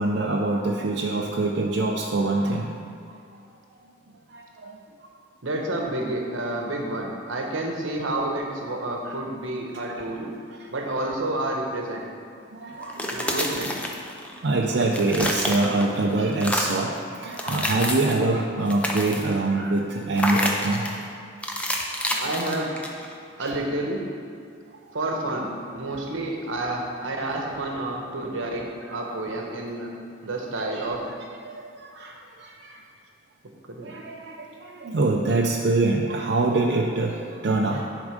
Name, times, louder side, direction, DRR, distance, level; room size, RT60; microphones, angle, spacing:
voice 1, 0.0-2.7 3.1-3.2 4.3-4.8 9.0-9.1 9.9-10.0 10.6-10.7 12.5-13.5 14.4-21.0 22.0-22.3 23.4-23.5 30.5-30.9 31.4-32.8 33.8-37.9, right 2 dB, 55° right, -1 dB, 0.5 m, -25 dB
voice 2, 5.4-10.3 10.7-12.1 13.1-13.8 22.2-22.8 23.4-24.1 24.9-29.9 30.2-31.1 33.7-33.9, right 1 dB, 80° right, 1 dB, 1.0 m, -29 dB
sound 1, 12.8-14.4 14.7-16.0 16.3-16.9 17.3-18.2 18.6-19.4 20.2-21.0 21.4-23.1, left 1 dB, 5° left, 0.4 m, -28 dB
10.5 x 3.6 x 5.0 m, 2.3 s
head